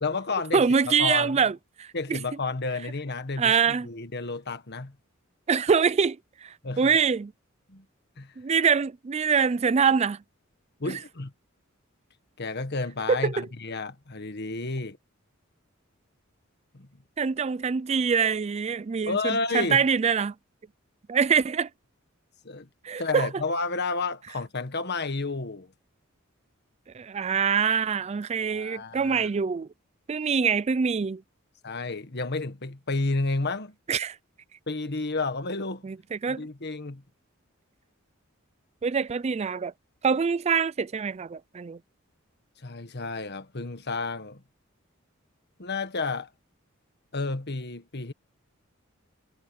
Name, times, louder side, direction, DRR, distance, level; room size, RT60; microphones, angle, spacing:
voice 1, 0.0-1.4 1.9-4.9 6.6-6.9 7.7-7.8 8.2-8.3 10.8-11.3 12.4-15.0 16.7-17.0 19.0-19.8 22.4-22.7 23.0-25.7 28.5-29.3 31.6-33.7 34.7-35.8 36.2-37.0 42.6-44.4 45.6-46.3 47.1-48.1, left 3 dB, 55° left, 1.6 m, -31 dB
voice 2, 0.5-2.2 3.4-3.9 5.5-7.3 8.4-10.2 13.1-13.4 17.2-20.3 21.1-21.7 22.8-23.3 26.9-29.7 30.1-31.2 33.9-34.2 35.8-36.5 38.8-39.7 40.0-41.8, right 6 dB, 30° right, 0.4 m, -24 dB
head